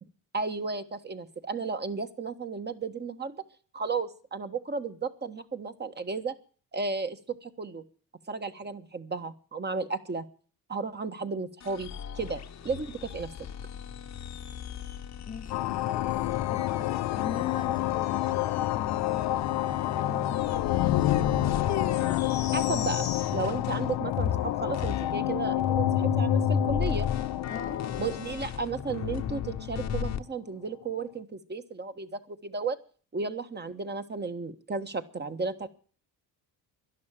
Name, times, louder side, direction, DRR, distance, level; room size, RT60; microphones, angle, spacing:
voice 1, 0.3-3.4 3.7-6.3 6.7-7.8 8.3-10.2 10.7-13.3 22.5-27.1 28.0-32.8 33.1-35.7, right 4 dB, 25° right, 8 dB, 1.4 m, -34 dB
sound 1, 11.6-23.9 24.1-30.2, left 7 dB, 45° left, 1.1 m, -34 dB
voice 2, 15.3-16.1 16.5-18.3 18.6-19.4 19.8-20.9 27.5-27.8, left 6 dB, 20° left, 8 dB, 0.7 m, -41 dB
sound 2, 15.5-29.6, left 15 dB, 90° left, 0.8 m, -29 dB
12.0 x 11.5 x 8.9 m, 0.42 s
cardioid pair, 110°, 38 cm